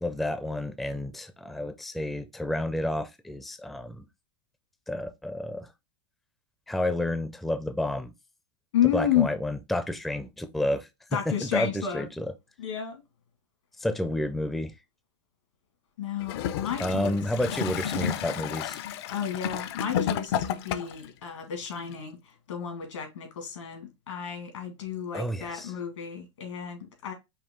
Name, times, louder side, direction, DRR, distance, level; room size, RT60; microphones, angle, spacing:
voice 1, 0.0-4.0 4.9-5.7 6.7-8.1 8.9-10.9 11.4-12.3 13.8-14.7 16.8-18.8 25.1-25.7, left 1 dB, ahead, 0.4 m, -30 dB
voice 2, 8.7-9.3 11.1-12.1 12.6-13.0 16.0-17.2 17.4-17.6 19.1-27.1, left 9 dB, 85° left, 2.1 m, -31 dB
Gurgling / Toilet flush, 16.2-21.1 21.9-22.0, left 9 dB, 60° left, 0.5 m, -31 dB
5.5 x 2.4 x 3.7 m
hypercardioid pair, 125°, 15 cm